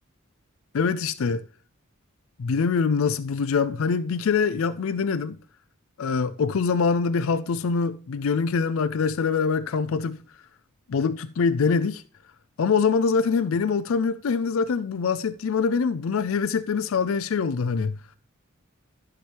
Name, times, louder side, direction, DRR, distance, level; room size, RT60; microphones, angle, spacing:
voice 1, 0.7-1.4 2.4-5.4 6.0-10.2 10.9-12.0 12.6-18.0, left 5 dB, 75° left, 0.4 m, -24 dB
12.0 x 5.8 x 3.3 m
head